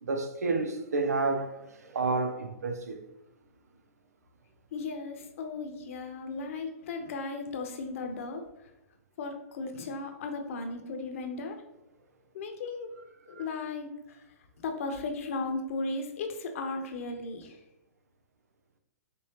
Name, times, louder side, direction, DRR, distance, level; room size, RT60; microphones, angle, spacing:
voice 1, 0.0-3.1 13.3-13.4, right 3 dB, 80° right, 0.6 m, -30 dB
voice 2, 4.7-8.4 9.2-11.6 12.3-12.9 13.3-14.2 14.6-17.6, left 3 dB, 55° left, 0.8 m, -36 dB
5.4 x 3.1 x 2.9 m
hypercardioid pair, 120°, 9 cm